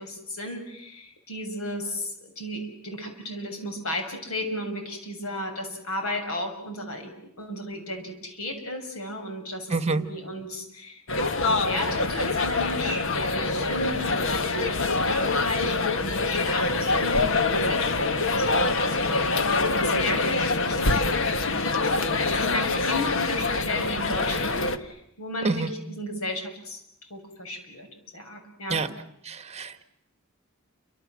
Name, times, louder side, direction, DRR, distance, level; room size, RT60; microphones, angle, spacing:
voice 1, 0.0-7.1 7.4-21.0 21.2-27.9 28.1-28.8, left 1 dB, 85° left, 5 dB, 7.3 m, -34 dB
voice 2, 9.7-10.1 25.4-25.7 28.7-28.9 29.2-29.8, right 3 dB, 30° right, 11 dB, 1.6 m, -27 dB
sound 1, 11.1-24.8, left 3 dB, 65° left, 1.6 m, -25 dB
29.5 x 26.0 x 7.6 m, 0.78 s
head